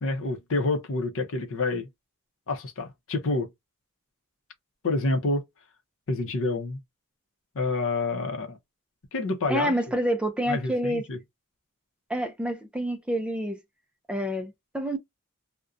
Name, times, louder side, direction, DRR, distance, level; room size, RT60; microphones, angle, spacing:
voice 1, 0.0-1.9 2.5-3.5 4.8-5.4 6.1-6.8 7.5-8.6 9.1-9.7 10.5-11.2, left 2 dB, 65° left, 0.6 m, -28 dB
voice 2, 9.5-11.0 12.1-13.6 14.1-15.0, equal, 5° right, 0.3 m, -28 dB
2.5 x 2.1 x 2.4 m
head